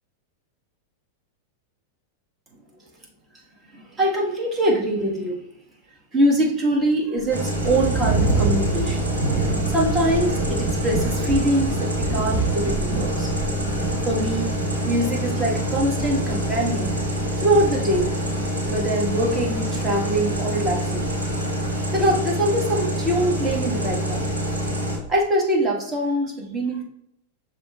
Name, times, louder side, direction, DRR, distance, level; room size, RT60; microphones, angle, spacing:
voice 1, 3.7-5.4 6.1-9.2 9.7-13.3 14.0-14.6 14.8-18.1 18.7-21.1 21.9-24.3 25.1-26.8, right 1 dB, 20° right, -2 dB, 1.4 m, -23 dB
sound 1, 7.2-25.2, right 4 dB, 45° right, 0.7 m, -30 dB
sound 2, 7.3-25.0, equal, 90° right, 1.6 m, -26 dB
6.8 x 3.0 x 2.3 m, 0.76 s
figure-of-eight pair, 95°, 0 cm